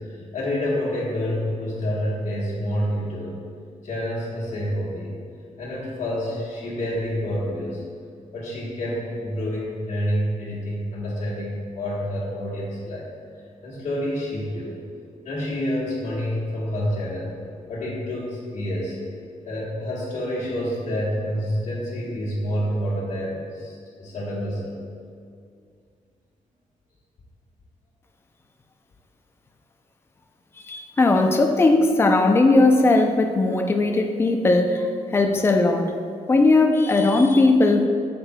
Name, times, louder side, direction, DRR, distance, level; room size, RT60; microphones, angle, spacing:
voice 1, 0.3-3.3 3.8-5.1 5.6-7.8 8.3-13.1 13.6-14.8 15.2-17.3 17.7-19.0 19.4-24.8, equal, 60° left, -8 dB, 1.4 m, -28 dB
voice 2, 30.7-35.9 36.3-37.9, left 2 dB, 20° left, 4 dB, 0.4 m, -18 dB
8.6 x 6.7 x 2.2 m, 2.3 s
wide cardioid pair, 150°, 14 cm